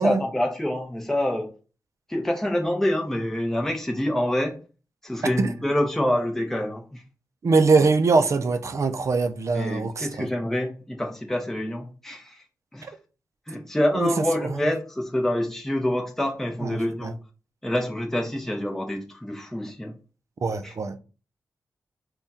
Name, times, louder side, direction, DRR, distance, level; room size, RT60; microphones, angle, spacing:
voice 1, 0.0-1.5 2.1-4.6 5.0-7.0 9.5-12.4 12.7-12.9 13.5-17.2 17.6-19.9 20.6-20.7, left 1 dB, 5° left, 0.6 m, -26 dB
voice 2, 7.4-10.3 13.9-14.1 16.7-17.1 20.4-21.0, right 4 dB, 55° right, 0.5 m, -22 dB
3.5 x 2.3 x 4.1 m
wide cardioid pair, 85°, 6 cm